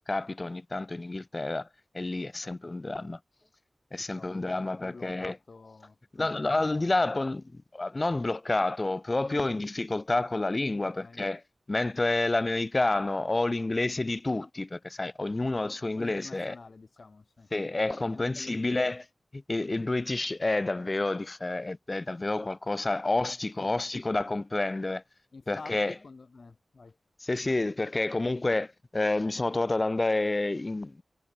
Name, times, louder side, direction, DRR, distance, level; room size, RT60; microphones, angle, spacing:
voice 1, 0.1-1.7 1.9-3.2 3.9-5.4 6.2-11.4 11.7-16.5 17.5-19.0 19.3-25.0 25.5-25.9 27.2-31.0, left 2 dB, 30° left, 0.5 m, -29 dB
voice 2, 4.0-6.3 9.2-9.5 10.8-11.2 16.0-17.5 18.1-18.9 23.6-23.7 25.3-27.0, left 4 dB, 55° left, 0.9 m, -48 dB
wide cardioid pair, 105°, 0 cm